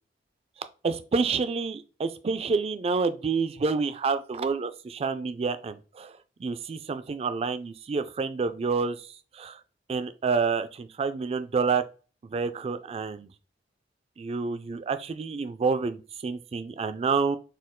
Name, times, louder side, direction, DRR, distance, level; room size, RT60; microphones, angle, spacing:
voice 1, 0.8-6.1 6.4-9.1 9.3-9.6 9.9-11.8 12.3-13.3 14.2-17.4, right 4 dB, 35° right, 0.3 m, -28 dB
4.3 x 2.3 x 3.7 m
head